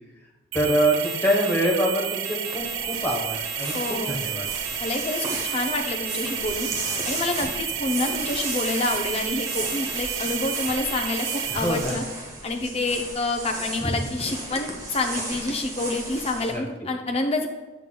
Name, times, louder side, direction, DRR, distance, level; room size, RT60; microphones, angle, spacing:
voice 1, 0.5-4.5 11.5-12.0 13.8-14.0 16.5-16.6, right 1 dB, 10° left, -4 dB, 1.1 m, -25 dB
sound 1, 0.5-11.9, right 8 dB, 70° right, 0.6 m, -31 dB
sound 2, 2.5-16.5, right 2 dB, 15° right, 0.8 m, -35 dB
voice 2, 3.7-4.2 4.8-6.7 7.0-12.0 12.4-17.5, left 2 dB, 30° left, 3 dB, 0.5 m, -28 dB
7.7 x 5.7 x 2.3 m, 1.2 s
head